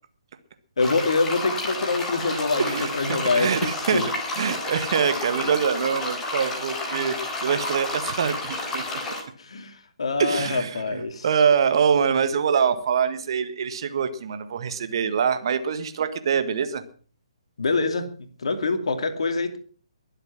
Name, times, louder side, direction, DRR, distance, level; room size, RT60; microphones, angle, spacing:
voice 1, 0.8-4.1 5.4-5.5 9.4-11.3 17.6-18.0 18.4-19.6, left 3 dB, 60° left, 7 dB, 2.7 m, -25 dB
sound 1, 0.8-9.2, left 2 dB, 10° left, 3.8 m, -31 dB
voice 2, 2.6-4.0 4.4-9.0 10.2-16.8, right 7 dB, 45° right, 9 dB, 1.8 m, -24 dB
22.0 x 8.0 x 6.0 m, 0.43 s
figure-of-eight pair, 135°, 3 cm